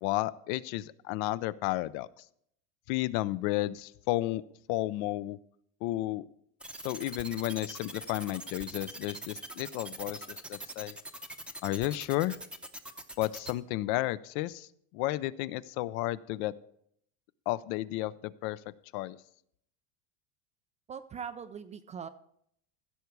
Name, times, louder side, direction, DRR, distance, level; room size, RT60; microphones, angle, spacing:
voice 1, 0.0-2.1 2.9-4.4 4.7-5.4 5.8-6.3 6.8-11.0 11.6-12.4 13.2-16.5 17.5-18.6 18.9-19.2, left 17 dB, 60° left, 17 dB, 0.6 m, -32 dB
sound 1, 6.6-13.5, right 1 dB, 5° right, 0.7 m, -42 dB
voice 2, 20.9-22.1, right 7 dB, 20° right, 11 dB, 0.3 m, -41 dB
15.5 x 6.8 x 4.7 m, 0.70 s
supercardioid pair, 130°, 39 cm